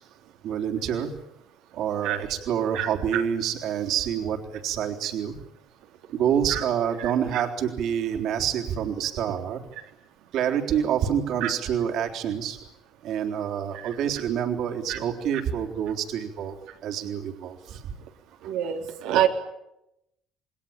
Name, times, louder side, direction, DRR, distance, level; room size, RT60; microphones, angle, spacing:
voice 1, 0.4-1.1 1.7-5.4 6.1-9.6 10.3-12.6 13.0-16.6 16.8-17.9 18.4-18.5, right 9 dB, 55° right, 2 dB, 3.7 m, -27 dB
voice 2, 2.7-3.2 6.5-6.6 7.0-7.4 11.4-11.5 14.9-15.0 18.4-19.3, right 11 dB, 85° right, 1 dB, 3.5 m, -26 dB
28.5 x 21.5 x 9.0 m, 0.88 s
cardioid pair, 155°, 0 cm